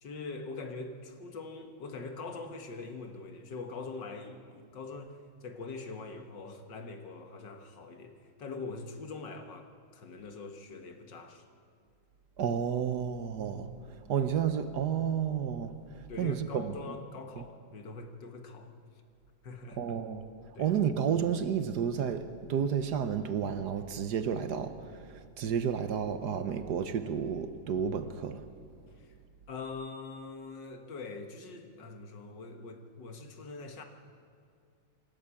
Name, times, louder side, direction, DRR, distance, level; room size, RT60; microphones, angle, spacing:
voice 1, 0.0-11.4 13.8-14.0 16.1-18.8 19.4-19.8 20.5-20.8 29.0-29.1 29.5-33.8, left 3 dB, 60° left, 2.1 m, -43 dB
voice 2, 12.4-16.7 17.4-17.5 19.8-20.3 20.6-28.4, right 8 dB, 60° right, 1.3 m, -31 dB
26.0 x 13.5 x 8.4 m
omnidirectional pair, 2.3 m